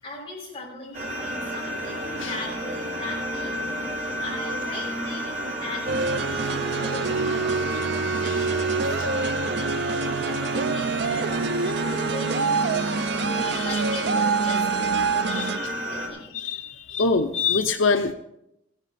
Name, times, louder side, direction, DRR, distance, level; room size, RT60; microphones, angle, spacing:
voice 1, 0.0-3.5 4.0-7.7 8.2-9.0 10.2-14.9 15.2-16.4, left 2 dB, 25° left, -6 dB, 6.7 m, -39 dB
sound 1, 0.9-16.1, equal, 40° right, 4.3 m, -31 dB
sound 2, 5.9-15.6, right 4 dB, 60° right, 0.4 m, -26 dB
voice 2, 13.4-13.8 15.3-15.7 16.3-18.1, left 4 dB, 85° left, 7 dB, 0.7 m, -25 dB
16.0 x 11.0 x 4.2 m, 0.81 s
head